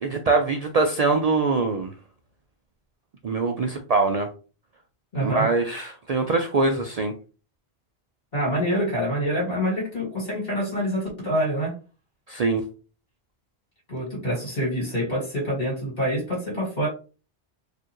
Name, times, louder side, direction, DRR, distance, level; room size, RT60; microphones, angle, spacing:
voice 1, 0.0-1.9 3.2-4.3 5.2-7.1 12.3-12.6, right 3 dB, 55° right, 4 dB, 0.4 m, -23 dB
voice 2, 5.1-5.5 8.3-11.7 13.9-16.9, equal, 50° left, -5 dB, 2.1 m, -26 dB
4.4 x 2.5 x 3.0 m, 0.35 s
omnidirectional pair, 1.1 m